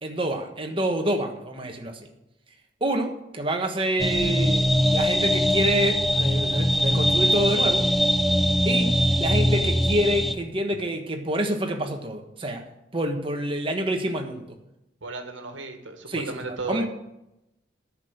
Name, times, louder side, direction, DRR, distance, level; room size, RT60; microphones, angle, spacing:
voice 1, 0.0-2.1 2.8-7.9 8.6-12.6 12.9-14.5 16.1-16.4 16.7-16.9, right 1 dB, 30° right, 4 dB, 1.3 m, -27 dB
sound 1, 4.0-10.3, equal, ahead, 0.5 m, -22 dB
voice 2, 15.0-16.9, right 3 dB, 80° right, 5 dB, 1.6 m, -34 dB
10.0 x 6.2 x 8.1 m, 0.88 s
head